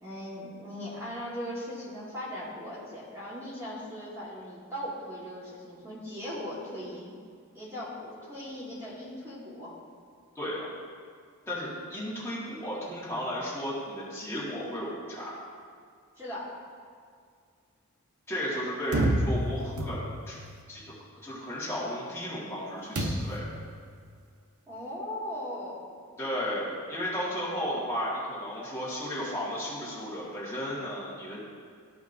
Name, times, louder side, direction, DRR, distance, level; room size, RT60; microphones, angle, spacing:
voice 1, 0.0-7.1 7.5-9.7 16.2-16.5 24.7-25.8, equal, 10° right, -8 dB, 1.6 m, -39 dB
voice 2, 10.3-10.7 11.5-15.3 18.3-20.4 20.7-20.8 21.2-23.4 26.2-31.4, equal, 10° left, -8 dB, 1.7 m, -34 dB
sound 1, 18.9-20.4 23.0-23.5, right 1 dB, 85° right, 0.9 m, -28 dB
13.5 x 5.1 x 2.7 m, 2.1 s
head